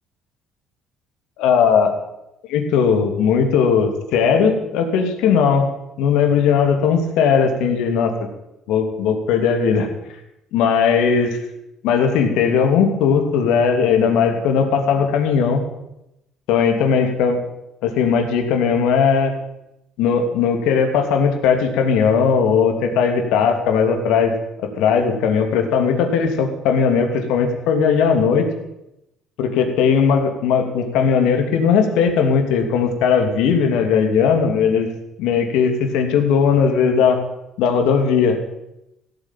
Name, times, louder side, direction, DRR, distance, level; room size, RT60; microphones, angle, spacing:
voice 1, 1.4-1.9 2.5-5.7 6.0-8.1 8.7-9.9 10.5-11.4 11.8-15.6 16.5-17.4 17.8-19.3 20.0-24.3 24.6-28.5 29.4-34.9 35.2-37.2 37.6-38.4, left 6 dB, 85° left, 5 dB, 3.0 m, -18 dB
16.5 x 9.4 x 9.1 m, 0.86 s
cardioid pair, 125°, 0 cm